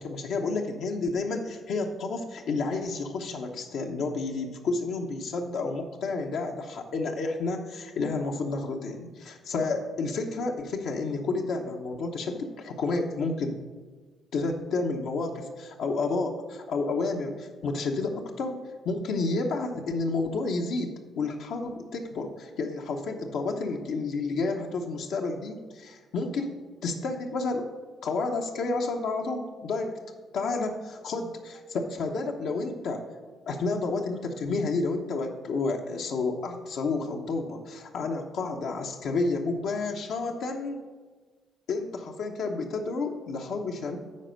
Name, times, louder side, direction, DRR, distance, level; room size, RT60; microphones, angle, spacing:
voice 1, 0.0-13.5 14.3-18.6 18.8-27.7 28.0-30.0 30.3-33.0 33.5-40.8 41.7-44.0, left 3 dB, 75° left, 1 dB, 0.9 m, -30 dB
9.7 x 4.2 x 6.4 m, 1.4 s
cardioid pair, 90°, 0 cm